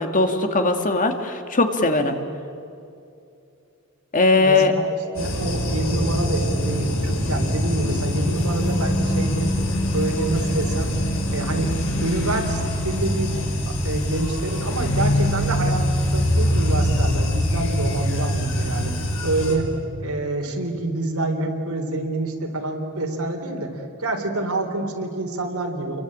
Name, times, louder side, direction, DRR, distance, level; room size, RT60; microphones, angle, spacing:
voice 1, 0.0-2.2 4.1-4.7, left 3 dB, 35° left, 6 dB, 2.0 m, -19 dB
voice 2, 4.4-9.5 9.9-11.0 11.3-11.7 12.0-13.4 13.7-19.7 20.0-26.0, right 2 dB, 75° right, 3 dB, 3.7 m, -27 dB
sound 1, 5.1-19.5, equal, 65° left, 5.7 m, -23 dB
30.0 x 23.0 x 8.7 m, 2.6 s
head